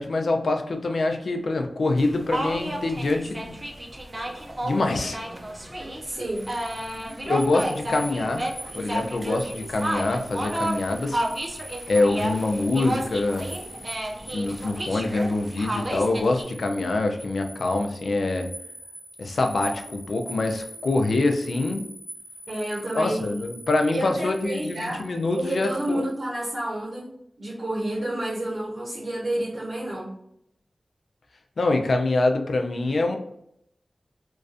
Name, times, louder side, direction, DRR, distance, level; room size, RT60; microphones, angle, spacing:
voice 1, 0.0-3.6 4.6-5.2 7.2-8.4 8.7-11.2 11.9-13.5 14.3-18.5 19.2-21.8 22.9-26.0 31.6-33.2, left 2 dB, 80° left, 4 dB, 0.4 m, -25 dB
sound 1, 2.0-16.4, right 1 dB, 30° right, 0.5 m, -32 dB
voice 2, 6.0-6.5 22.5-23.3 23.9-25.1 25.3-27.1 27.4-30.2, right 1 dB, 70° right, -6 dB, 0.7 m, -30 dB
sound 2, 6.4-26.2, right 1 dB, 20° left, 0.9 m, -43 dB
2.4 x 2.2 x 2.5 m, 0.75 s
cardioid pair, 50°, 0 cm